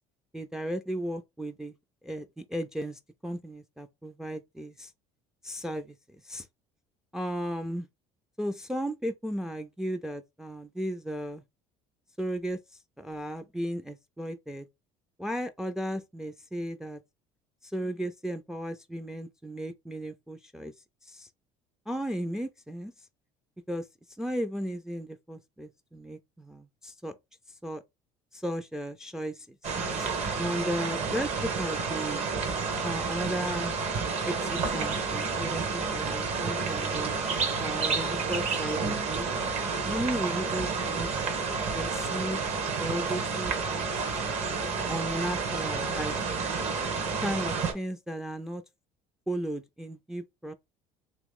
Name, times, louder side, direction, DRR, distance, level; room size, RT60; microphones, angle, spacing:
voice 1, 0.3-1.7 2.0-4.9 5.4-6.0 6.2-6.5 7.1-7.9 8.4-11.4 12.2-12.6 13.0-14.7 15.2-17.0 17.6-20.7 21.0-21.3 21.9-22.9 23.7-23.9 24.2-27.2 27.6-27.8 28.3-32.3 32.8-33.7 34.2-37.1 37.6-39.3 39.8-41.1 41.7-42.4 42.8-44.0 44.9-46.1 47.2-48.6 49.3-50.5, equal, 5° right, 0.4 m, -35 dB
sound 1, 29.6-47.7, right 4 dB, 50° right, 1.2 m, -30 dB
3.0 x 3.0 x 3.6 m
cardioid pair, 115°, 14 cm